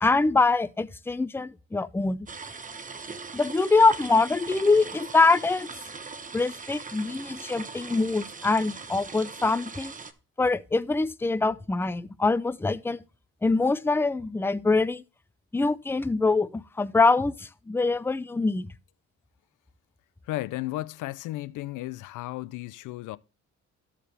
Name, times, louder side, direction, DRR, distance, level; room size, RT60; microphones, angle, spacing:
voice 1, 0.0-2.3 3.3-5.7 6.3-9.9 10.4-13.0 13.4-15.0 15.5-18.7, left 3 dB, 10° left, 0.5 m, -24 dB
sound 1, 2.3-10.1, right 4 dB, 25° right, 0.9 m, -40 dB
voice 2, 20.2-23.2, left 17 dB, 85° left, 0.5 m, -34 dB
14.0 x 4.9 x 3.3 m
cardioid pair, 90°, 30 cm